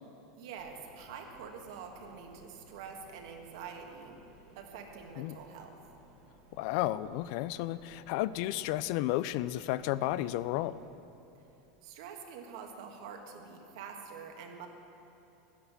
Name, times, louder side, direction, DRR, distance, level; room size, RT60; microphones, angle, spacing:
voice 1, 0.3-4.2 4.5-5.8 11.8-14.7, right 6 dB, 65° right, 3 dB, 1.6 m, -46 dB
sound 1, 0.6-11.0, right 2 dB, 50° right, 1.5 m, -59 dB
voice 2, 6.6-10.8, left 15 dB, 55° left, 16 dB, 0.3 m, -32 dB
11.5 x 10.0 x 6.7 m, 2.9 s
supercardioid pair, 155°, 3 cm